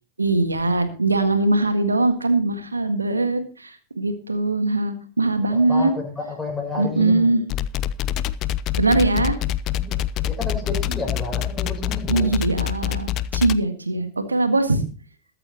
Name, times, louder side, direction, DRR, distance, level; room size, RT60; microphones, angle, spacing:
voice 1, 0.2-5.9 6.8-7.4 8.8-9.4 12.1-14.8, right 2 dB, 80° right, 9 dB, 1.7 m, -21 dB
voice 2, 5.4-7.3 9.8-12.3, left 2 dB, 5° left, -1 dB, 7.0 m, -31 dB
sound 1, 7.5-13.6, left 12 dB, 35° left, 0.6 m, -25 dB
22.0 x 9.0 x 3.0 m, 0.36 s
figure-of-eight pair, 90°, 0 cm